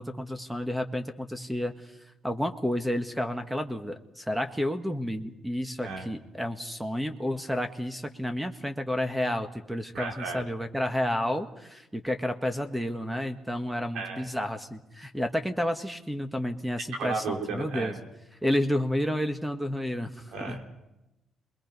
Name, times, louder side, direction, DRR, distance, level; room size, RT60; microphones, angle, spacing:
voice 1, 0.0-1.9 2.2-17.9 18.4-20.6, equal, 5° right, 7 dB, 1.6 m, -31 dB
voice 2, 9.9-10.4 13.9-14.3 16.9-18.0 20.3-20.7, right 4 dB, 85° right, 3 dB, 3.2 m, -34 dB
27.0 x 21.5 x 5.4 m, 0.93 s
cardioid pair, 90°, 0 cm